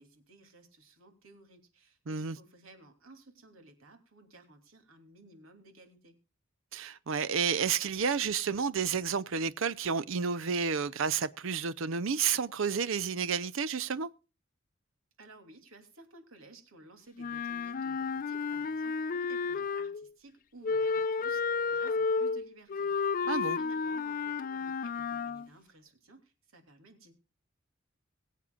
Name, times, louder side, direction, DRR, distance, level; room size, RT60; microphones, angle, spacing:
voice 1, 0.0-6.2 15.2-27.1, right 2 dB, 90° right, 3.0 m, -56 dB
voice 2, 2.1-2.4 6.7-14.1 23.3-23.6, right 6 dB, 70° right, 0.6 m, -31 dB
Wind instrument woodwind instrument, 17.2-20.1 20.6-25.5, left 5 dB, 45° left, 0.4 m, -32 dB
22.0 x 8.3 x 2.4 m
head